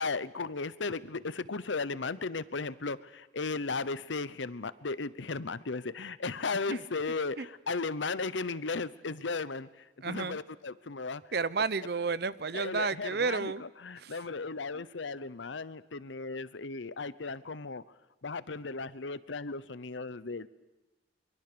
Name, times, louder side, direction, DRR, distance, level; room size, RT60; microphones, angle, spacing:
voice 1, 0.0-9.7 10.0-11.2 12.5-17.8 18.2-20.5, left 4 dB, 75° left, 16 dB, 0.9 m, -35 dB
voice 2, 10.0-10.4 11.3-13.6 14.0-14.1 14.7-14.9, right 4 dB, 55° right, 17 dB, 0.7 m, -31 dB
24.0 x 23.0 x 6.9 m, 1.1 s
head